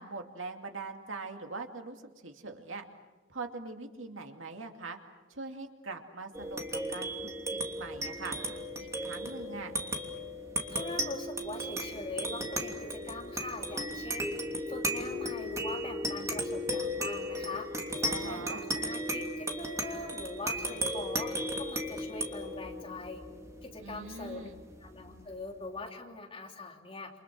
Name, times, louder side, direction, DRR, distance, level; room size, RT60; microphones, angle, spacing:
voice 1, 0.0-2.8 3.3-5.0 5.3-8.4 8.8-9.7 18.1-18.6 23.8-24.6, right 3 dB, 75° right, 4 dB, 2.6 m, -42 dB
sound 1, 6.3-25.2, equal, 15° right, 2.9 m, -36 dB
voice 2, 10.7-14.3 14.7-17.7 18.0-21.3 21.6-23.2 23.6-24.5 24.8-27.1, left 2 dB, 30° left, 1 dB, 3.3 m, -42 dB
28.5 x 28.5 x 6.4 m, 1.2 s
head